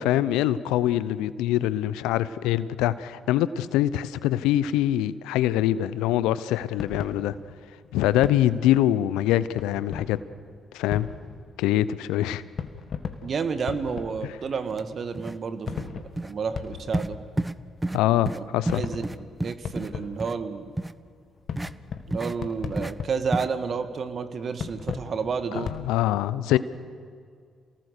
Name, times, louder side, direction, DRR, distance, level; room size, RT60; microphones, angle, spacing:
voice 1, 0.0-7.3 7.9-10.2 10.7-11.1 11.6-12.4 14.2-14.3 17.9-18.8 25.6-26.6, left 13 dB, 80° left, 17 dB, 0.7 m, -24 dB
sound 1, 6.8-25.8, left 6 dB, 60° left, 1.8 m, -38 dB
voice 2, 13.2-17.2 18.3-20.7 22.1-25.7 26.5-26.6, right 5 dB, 55° right, 9 dB, 1.8 m, -31 dB
sound 2, 14.7-14.8 15.1-15.4 15.7-15.9 16.2-16.3 16.9-17.1 17.4-17.6 17.8-18.0 18.3-18.4 18.7-19.9 20.2-20.3 20.8-20.9 21.6-21.7 22.1-22.3 22.8-22.9 23.3-23.5, right 1 dB, 15° right, 0.8 m, -29 dB
28.0 x 19.0 x 6.7 m, 2.1 s
hypercardioid pair, 45°, 0 cm